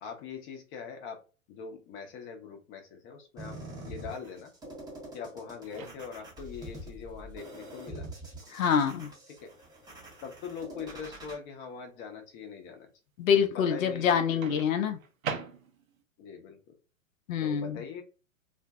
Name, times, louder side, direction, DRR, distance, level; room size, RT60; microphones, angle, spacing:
voice 1, 0.0-1.2 1.5-3.6 3.8-4.5 5.1-8.1 9.4-9.5 10.2-12.9 13.5-14.4 16.2-16.6 17.4-18.0, left 6 dB, 30° left, 0.7 m, -42 dB
sound 1, 3.4-11.3, right 1 dB, 10° right, 0.7 m, -45 dB
Microwave oven, 5.7-6.4 8.4-8.6 14.4-16.0, right 5 dB, 75° right, 0.7 m, -40 dB
voice 2, 8.5-9.1 13.2-15.0 17.3-17.8, left 7 dB, 70° left, 0.6 m, -26 dB
2.5 x 2.1 x 2.3 m
hypercardioid pair, 110°, 41 cm